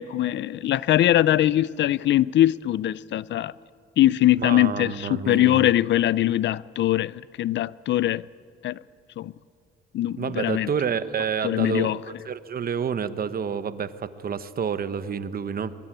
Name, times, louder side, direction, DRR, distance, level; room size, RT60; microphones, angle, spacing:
voice 1, 0.0-3.5 4.0-8.2 8.6-8.8 9.2-9.3 9.9-10.7 11.4-12.0, left 13 dB, 65° left, 0.5 m, -22 dB
voice 2, 4.4-5.7 10.2-15.7, right 7 dB, 50° right, 1.2 m, -29 dB
23.0 x 23.0 x 9.2 m
cardioid pair, 90°, 20 cm